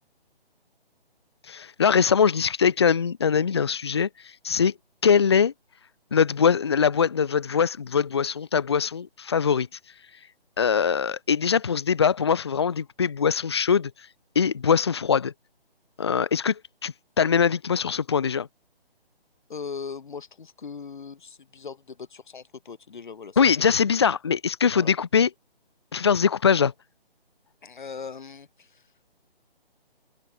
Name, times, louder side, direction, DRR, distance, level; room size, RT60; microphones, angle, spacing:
voice 1, 1.5-4.1 4.4-4.7 5.0-5.5 6.1-9.7 10.6-13.9 14.4-15.3 16.0-18.5 23.4-25.3 25.9-26.7, left 6 dB, 25° left, 0.6 m, -22 dB
voice 2, 19.5-23.7 24.7-24.9 27.6-28.8, left 5 dB, 50° left, 3.3 m, -39 dB
open air
figure-of-eight pair, 145°, 31 cm